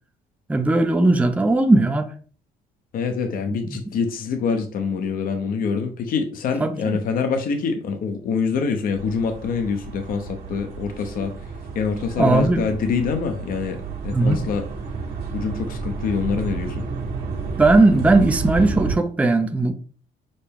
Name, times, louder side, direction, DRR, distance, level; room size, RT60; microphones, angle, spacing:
voice 1, 0.5-2.1 3.7-3.8 6.6-7.0 12.2-12.6 14.1-14.4 16.9-17.0 17.6-19.7, right 2 dB, 10° right, 0.5 m, -18 dB
voice 2, 2.9-11.3 11.7-14.6 15.3-16.8, left 5 dB, 55° left, 0.8 m, -25 dB
sound 1, 9.0-19.0, right 5 dB, 65° right, 1.4 m, -31 dB
6.5 x 2.2 x 3.4 m
cardioid pair, 110°, 17 cm